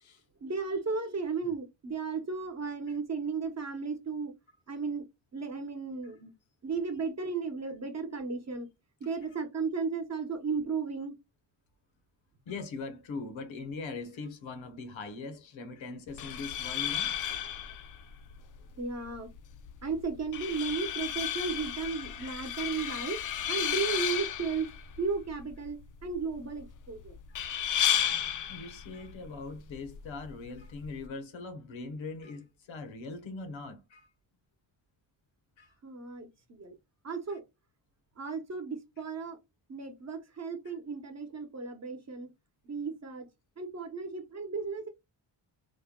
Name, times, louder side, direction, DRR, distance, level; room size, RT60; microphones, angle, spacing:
voice 1, 0.4-4.3 4.7-5.1 5.3-6.3 6.6-8.7 9.0-11.1 18.8-19.3 19.8-23.2 23.5-24.7 25.0-27.1 35.8-36.7 37.0-37.4 38.2-39.4 39.7-42.3 42.6-43.3 43.6-44.9, right 4 dB, 35° right, 0.9 m, -34 dB
voice 2, 12.5-17.1 27.3-27.4 28.5-34.1 35.6-35.7 37.3-37.4 40.6-40.7, left 3 dB, 80° left, 0.9 m, -41 dB
sound 1, 16.1-31.1, left 10 dB, 45° left, 0.4 m, -34 dB
3.2 x 2.2 x 3.6 m
cardioid pair, 95°, 45 cm